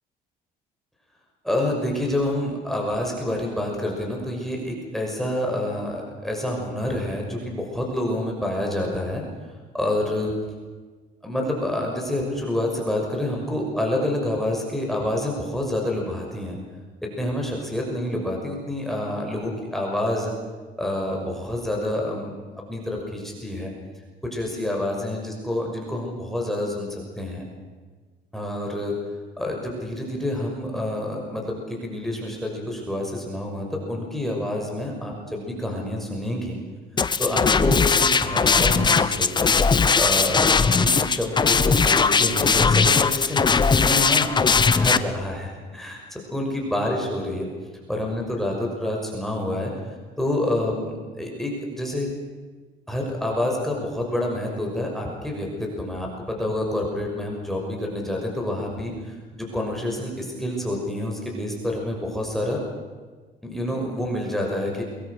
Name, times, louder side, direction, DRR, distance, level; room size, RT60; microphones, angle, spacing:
voice 1, 1.4-9.2 9.7-10.3 11.2-16.6 17.0-20.3 20.8-22.3 22.7-23.7 24.3-27.5 28.3-28.9 29.4-36.6 37.2-39.5 40.0-47.5 47.9-49.7 50.2-52.1 52.9-62.6 63.4-64.8, left 1 dB, ahead, -1 dB, 6.0 m, -28 dB
sound 1, 37.0-45.0, left 5 dB, 25° left, 1.0 m, -19 dB
23.5 x 23.0 x 6.5 m, 1.4 s
cardioid pair, 110°, 17 cm